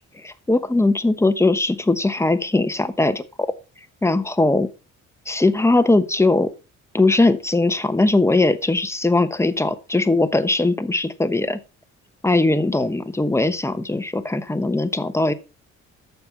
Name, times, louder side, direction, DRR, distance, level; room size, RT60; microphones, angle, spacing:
voice 1, 0.2-3.5 4.0-4.7 5.3-6.5 6.9-11.6 12.2-15.3, left 2 dB, 10° left, 10 dB, 1.1 m, -20 dB
9.5 x 7.0 x 4.5 m, 0.31 s
cardioid pair, 90°, 30 cm